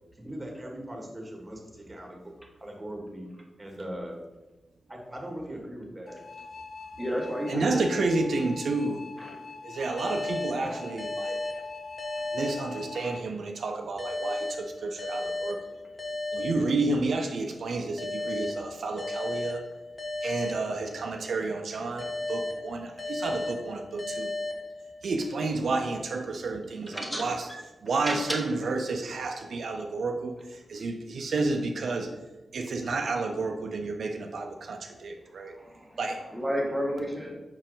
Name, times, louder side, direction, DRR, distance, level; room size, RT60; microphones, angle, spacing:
voice 1, 0.2-2.3 2.6-3.3 3.6-4.2 4.9-6.3 7.5-7.8, right 1 dB, 20° right, 0 dB, 1.5 m, -39 dB
sound 1, 6.1-13.2, left 4 dB, 60° left, 0.3 m, -44 dB
voice 2, 7.0-8.0 9.2-9.4 10.7-10.8 12.9-13.1 20.2-20.3 26.8-27.6 28.1-28.4 35.3-37.3, equal, ahead, -2 dB, 1.3 m, -33 dB
voice 3, 7.5-9.0 9.6-11.4 12.3-15.6 16.3-19.6 20.2-24.3 25.0-27.5 27.8-32.1 32.5-35.5 36.0-36.2, right 3 dB, 75° right, 4 dB, 0.5 m, -30 dB
sound 2, 10.0-13.3 14.0-17.3 18.0-21.3 22.0-25.3, left 2 dB, 25° left, 1.1 m, -35 dB
5.9 x 4.4 x 3.9 m, 1.1 s
wide cardioid pair, 105°, 0 cm